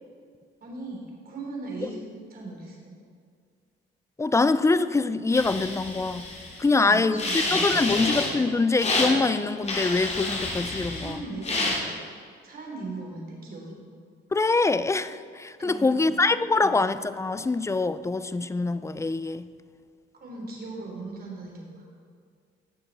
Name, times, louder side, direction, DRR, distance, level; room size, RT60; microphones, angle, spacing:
voice 1, 0.6-2.0 2.3-3.0 6.6-8.0 11.0-11.7 12.4-13.8 15.6-16.0 16.5-16.8 20.1-21.8, right 3 dB, 50° right, -1 dB, 3.4 m, -38 dB
voice 2, 4.2-6.3 6.6-11.2 14.3-19.5, left 3 dB, 15° left, 14 dB, 0.4 m, -24 dB
sound 1, 5.3-6.7 7.2-8.3 8.8-9.1 9.7-11.1 11.4-11.8, left 2 dB, 35° left, 2.4 m, -29 dB
17.0 x 6.9 x 4.1 m, 2.1 s
cardioid pair, 90°, 20 cm